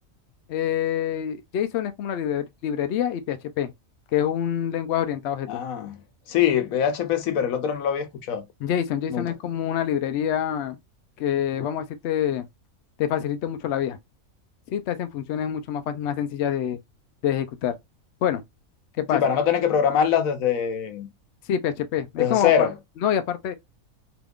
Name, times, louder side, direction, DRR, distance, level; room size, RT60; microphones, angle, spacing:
voice 1, 0.5-3.7 4.1-5.6 8.6-10.8 11.2-12.5 13.0-14.0 14.7-16.8 17.2-17.7 18.2-18.4 19.0-19.2 21.5-22.7 23.0-23.5, left 9 dB, 65° left, 0.7 m, -26 dB
voice 2, 5.5-6.0 6.3-8.4 9.1-9.3 19.1-21.1 22.2-22.8, left 8 dB, 80° left, 1.1 m, -23 dB
3.4 x 3.0 x 2.3 m
omnidirectional pair, 1.4 m